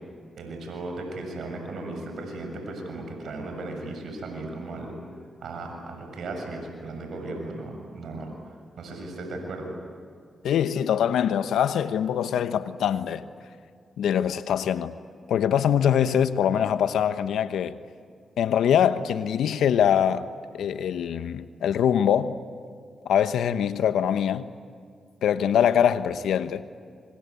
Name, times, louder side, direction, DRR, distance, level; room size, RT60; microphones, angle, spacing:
voice 1, 0.4-4.9 5.4-8.3 8.8-9.8, right 2 dB, 75° right, 6.9 m, -36 dB
voice 2, 10.4-13.3 14.0-14.9 15.3-17.8 18.4-20.3 20.5-22.4 23.0-24.5 25.2-26.7, left 9 dB, 85° left, 1.0 m, -23 dB
28.0 x 25.5 x 8.4 m
supercardioid pair, 45°, 0 cm